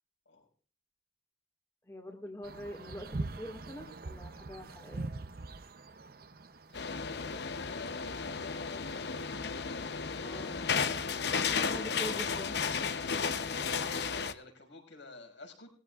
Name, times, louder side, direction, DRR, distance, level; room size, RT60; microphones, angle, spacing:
voice 1, 1.9-5.1 10.2-10.6 11.4-12.7, equal, 15° left, 2 dB, 1.8 m, -44 dB
sound 1, 2.4-7.5, right 2 dB, 50° right, 0.7 m, -42 dB
voice 2, 6.7-9.8 10.1-11.0 13.2-15.7, left 2 dB, 80° left, 2 dB, 5.9 m, -51 dB
sound 2, 6.7-14.3, left 5 dB, 60° left, 0.8 m, -33 dB
20.0 x 14.5 x 2.4 m, 0.41 s
head